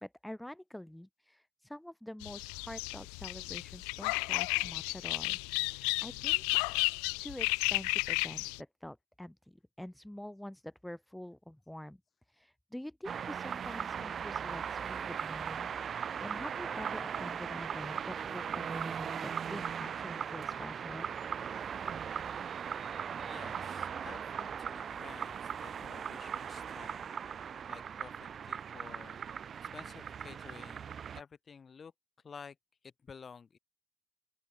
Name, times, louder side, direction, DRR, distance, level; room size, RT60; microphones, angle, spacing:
voice 1, 0.0-6.4 7.2-12.0 12.3-21.1, left 1 dB, 5° left, 1.6 m, -46 dB
sound 1, 2.2-8.6, left 37 dB, 80° left, 0.9 m, -33 dB
sound 2, 13.0-31.2, right 7 dB, 55° right, 2.3 m, -39 dB
voice 2, 23.2-29.2 29.6-30.9 31.2-31.9 32.2-32.6 32.8-33.6, left 6 dB, 45° left, 5.9 m, -52 dB
open air
hypercardioid pair, 50°, 0 cm